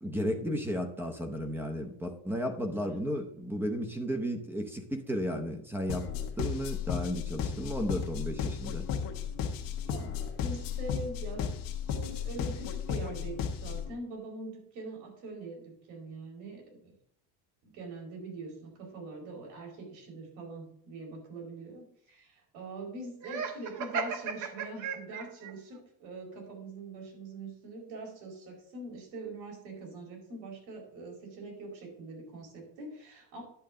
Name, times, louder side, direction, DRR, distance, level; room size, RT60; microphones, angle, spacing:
voice 1, 0.0-6.1 6.4-8.9, equal, 5° right, 6 dB, 0.6 m, -34 dB
sound 1, 5.9-13.9, left 7 dB, 50° left, 1.3 m, -34 dB
voice 2, 9.8-11.4 11.9-16.9 17.6-33.4, right 2 dB, 75° right, 0 dB, 4.8 m, -43 dB
Laughter, 23.2-25.5, right 5 dB, 40° right, 1.1 m, -35 dB
10.5 x 7.8 x 3.8 m, 0.69 s
cardioid pair, 180°, 46 cm